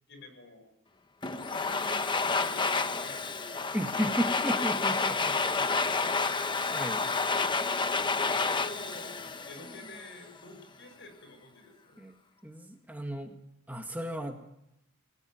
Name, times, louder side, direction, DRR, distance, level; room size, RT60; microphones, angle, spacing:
voice 1, 0.1-0.7 1.5-2.1 2.4-3.4 5.2-6.5 8.3-12.0, left 1 dB, 55° left, 7 dB, 7.2 m, -49 dB
Domestic sounds home sounds, 1.2-10.1, left 4 dB, 20° left, 0.9 m, -30 dB
voice 2, 3.7-5.3 6.7-7.0 12.0-12.1 12.4-13.4 13.7-14.4, equal, 10° right, 3 dB, 1.8 m, -34 dB
28.5 x 19.5 x 9.5 m, 0.86 s
head